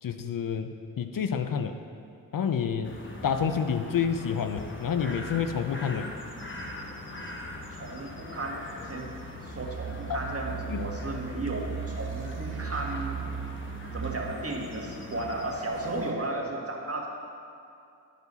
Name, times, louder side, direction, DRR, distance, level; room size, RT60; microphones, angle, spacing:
voice 1, 0.0-1.8 2.3-3.0 3.2-6.1 10.1-10.2 10.7-10.8, left 7 dB, 55° left, 8 dB, 0.6 m, -29 dB
sound 1, 2.8-16.1, left 2 dB, 30° left, 1.1 m, -41 dB
voice 2, 7.7-9.1 9.4-13.2 13.9-17.1, right 2 dB, 35° right, -1 dB, 1.5 m, -34 dB
sound 2, 9.4-14.3, right 8 dB, 75° right, 0.5 m, -37 dB
12.0 x 4.7 x 4.0 m, 2.5 s
cardioid pair, 45°, 39 cm